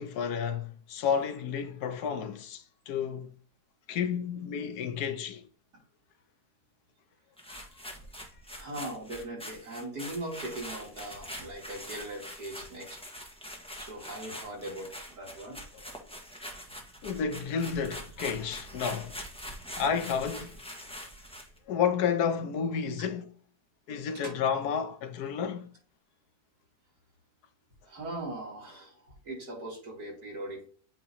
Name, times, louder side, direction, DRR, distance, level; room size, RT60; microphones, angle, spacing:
voice 1, 0.0-3.3 3.9-5.4 17.0-19.2 19.8-20.5 21.7-23.3 23.9-25.7, left 7 dB, 75° left, 1.3 m, -31 dB
sound 1, 7.4-21.6, equal, 5° left, 1.2 m, -44 dB
voice 2, 8.5-13.0 13.8-15.6 24.1-24.3 27.8-30.7, right 1 dB, 75° right, 3.1 m, -40 dB
8.5 x 3.0 x 4.1 m
omnidirectional pair, 1.7 m